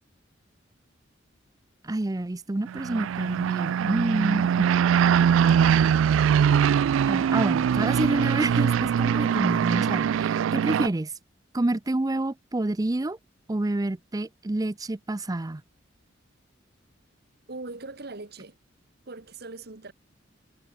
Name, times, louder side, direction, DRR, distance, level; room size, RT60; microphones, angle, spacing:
voice 1, 1.8-4.7 7.1-11.1 11.5-13.2 13.5-15.6, right 2 dB, 20° right, 0.5 m, -28 dB
sound 1, 2.7-10.9, right 8 dB, 90° right, 0.3 m, -22 dB
voice 2, 17.5-18.5 19.0-19.9, right 3 dB, 55° right, 1.6 m, -40 dB
head